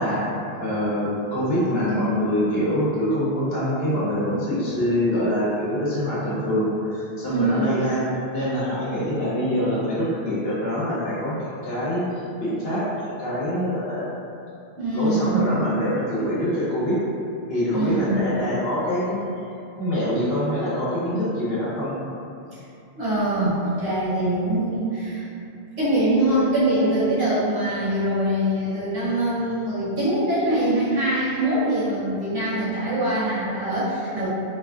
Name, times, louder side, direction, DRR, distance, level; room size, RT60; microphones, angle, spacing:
voice 1, 0.0-8.0 8.3-14.1 14.9-17.0 17.5-19.2 19.8-22.0, equal, 70° left, -9 dB, 1.0 m, -25 dB
voice 2, 7.2-7.7 14.8-15.5 17.7-18.2 23.0-25.3 25.8-34.3, right 1 dB, 65° right, -11 dB, 1.1 m, -23 dB
3.0 x 2.4 x 2.3 m, 2.6 s
omnidirectional pair, 1.1 m